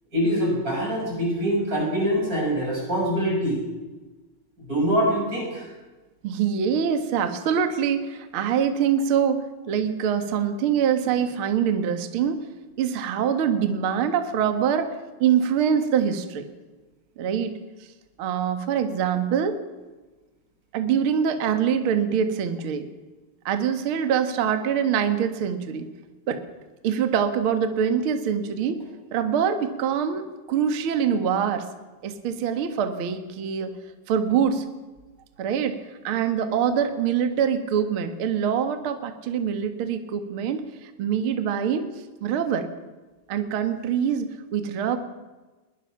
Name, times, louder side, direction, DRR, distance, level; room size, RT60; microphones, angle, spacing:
voice 1, 0.1-3.6 4.7-5.7, equal, 20° right, -2 dB, 6.7 m, -24 dB
voice 2, 6.2-12.4 12.8-14.9 15.2-16.5 17.2-17.5 18.2-19.6 20.7-22.9 23.5-25.9 26.3-26.4 26.8-28.8 29.1-31.7 32.0-33.7 34.1-34.7 35.4-35.8 36.0-41.9 42.2-42.7 43.3-45.0, right 8 dB, 50° right, 7 dB, 1.8 m, -24 dB
21.5 x 21.0 x 5.9 m, 1.2 s
omnidirectional pair, 4.3 m